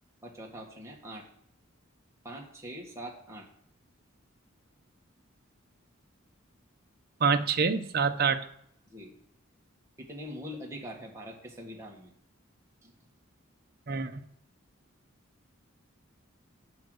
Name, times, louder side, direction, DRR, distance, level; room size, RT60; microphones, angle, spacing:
voice 1, 0.2-1.3 2.2-3.5 8.9-9.1 10.0-12.1 12.8-12.9, equal, 15° right, -1 dB, 1.7 m, -43 dB
voice 2, 7.2-8.4 13.9-14.2, right 5 dB, 50° right, 8 dB, 0.7 m, -26 dB
7.7 x 5.8 x 7.8 m, 0.68 s
head